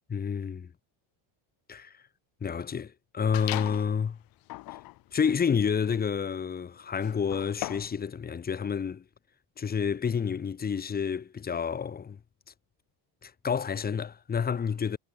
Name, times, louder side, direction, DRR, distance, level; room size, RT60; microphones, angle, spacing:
voice 1, 0.1-0.7 1.7-2.0 2.4-4.2 5.1-9.0 9.6-12.2 13.2-15.0, left 6 dB, 20° left, 3.0 m, -29 dB
sound 1, 3.3-3.9 4.4-8.0, left 19 dB, 45° left, 1.4 m, -39 dB
cardioid pair, 180°, 48 cm